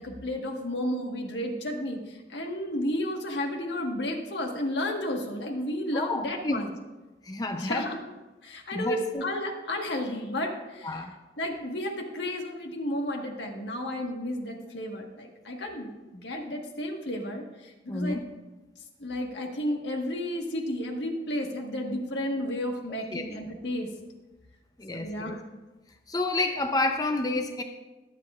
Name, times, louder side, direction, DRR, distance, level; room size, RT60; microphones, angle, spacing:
voice 1, 0.0-6.7 7.5-8.0 8.4-11.0 11.4-15.9 16.2-18.2 19.0-23.9 24.9-25.5, left 1 dB, 80° left, 2 dB, 1.5 m, -32 dB
voice 2, 5.9-6.6 7.2-7.9 8.7-9.2 10.8-11.1 17.9-18.2 23.1-23.2 24.8-25.3 26.1-27.6, left 2 dB, 20° left, 5 dB, 0.5 m, -29 dB
22.0 x 7.7 x 2.4 m, 1.1 s
head